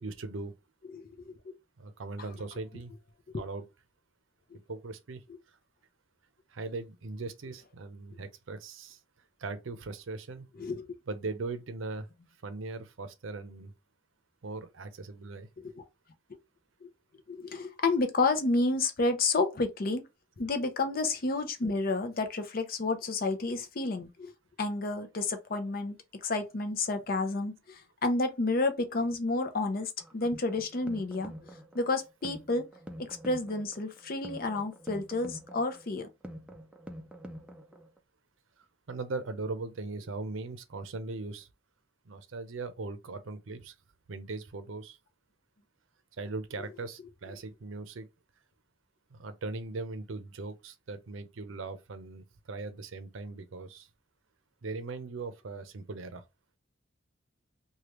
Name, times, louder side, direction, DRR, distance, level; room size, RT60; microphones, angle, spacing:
voice 1, 0.0-0.5 1.8-2.9 3.4-3.6 4.7-5.2 6.5-9.0 9.4-10.5 11.1-12.1 12.4-13.7 14.4-15.5 38.9-41.5 42.1-43.7 44.1-45.0 46.2-48.1 49.1-53.9 54.6-56.2, right 3 dB, 80° right, 0.6 m, -39 dB
voice 2, 0.9-1.3 10.6-10.9 15.6-15.8 16.8-16.9 17.3-20.0 20.4-24.3 24.6-31.3 31.7-32.7 33.0-36.1, left 3 dB, 45° left, 0.6 m, -30 dB
sound 1, 30.0-38.0, equal, 5° right, 0.3 m, -46 dB
3.3 x 2.3 x 3.0 m
head